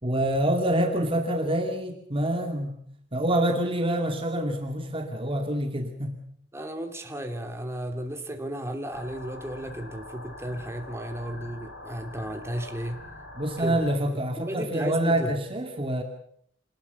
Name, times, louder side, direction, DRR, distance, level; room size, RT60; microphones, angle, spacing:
voice 1, 0.0-2.8 3.1-6.2 13.4-16.0, right 1 dB, 30° right, 4 dB, 2.4 m, -26 dB
voice 2, 6.5-13.0 13.6-13.8 14.1-15.3, equal, 15° right, 4 dB, 2.8 m, -34 dB
sound 1, 8.9-13.9, left 2 dB, 80° left, 7.4 m, -44 dB
27.0 x 19.5 x 7.0 m, 0.67 s
head